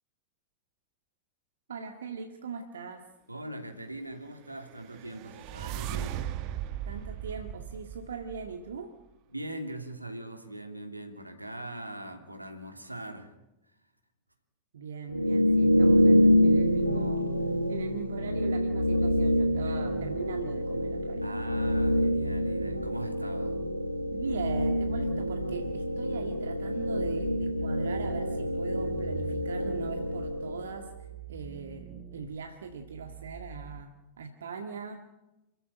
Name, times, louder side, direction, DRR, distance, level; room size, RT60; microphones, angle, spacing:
voice 1, 1.7-3.0 6.8-8.9 14.7-17.3 17.7-21.4 24.1-35.1, right 5 dB, 65° right, 4 dB, 1.9 m, -40 dB
voice 2, 3.3-6.3 9.3-13.3 19.6-20.2 21.2-23.6, right 1 dB, 85° right, 5 dB, 2.8 m, -41 dB
sound 1, 4.6-8.8, right 11 dB, 45° right, 1.3 m, -38 dB
sound 2, 15.1-30.9, equal, 90° left, 1.3 m, -26 dB
sound 3, 23.9-25.9 26.6-33.8, right 6 dB, 25° right, 3.0 m, -47 dB
27.5 x 14.5 x 8.9 m, 0.99 s
figure-of-eight pair, 90°, 0 cm